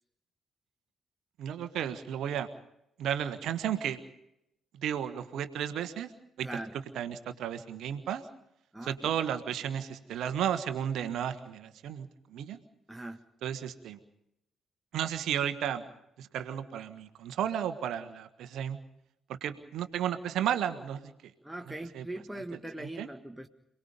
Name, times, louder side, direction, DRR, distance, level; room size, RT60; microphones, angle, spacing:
voice 1, 1.4-2.5 3.0-4.0 4.7-6.1 6.4-6.5 6.9-8.2 8.8-12.6 13.4-14.0 14.9-15.8 16.2-18.8 19.3-21.1 21.9-22.0 22.5-23.1, right 9 dB, 60° right, 10 dB, 1.5 m, -33 dB
voice 2, 6.4-6.7 8.7-9.0 12.9-13.2 21.4-23.5, right 1 dB, 5° right, 4 dB, 1.5 m, -40 dB
27.5 x 20.0 x 5.3 m, 0.81 s
figure-of-eight pair, 40°, 0 cm